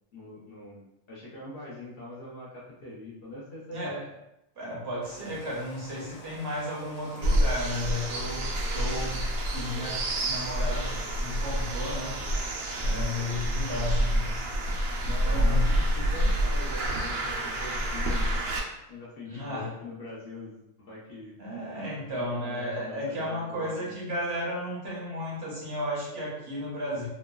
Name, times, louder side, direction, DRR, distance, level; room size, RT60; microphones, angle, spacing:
voice 1, 0.1-4.0 8.2-8.4 12.8-13.1 15.0-18.3 18.9-21.3 22.1-23.9, left 1 dB, 55° left, -6 dB, 0.8 m, -43 dB
voice 2, 3.7-4.1 4.6-8.5 8.7-12.2 12.8-14.3 15.0-15.8 19.3-19.7 21.4-27.1, left 1 dB, 60° right, -5 dB, 0.9 m, -34 dB
Rain, 5.0-13.1, left 2 dB, 70° left, 0.4 m, -48 dB
sound 1, 7.2-18.6, right 1 dB, 80° right, 1.0 m, -28 dB
2.9 x 2.2 x 2.2 m, 0.87 s
omnidirectional pair, 1.3 m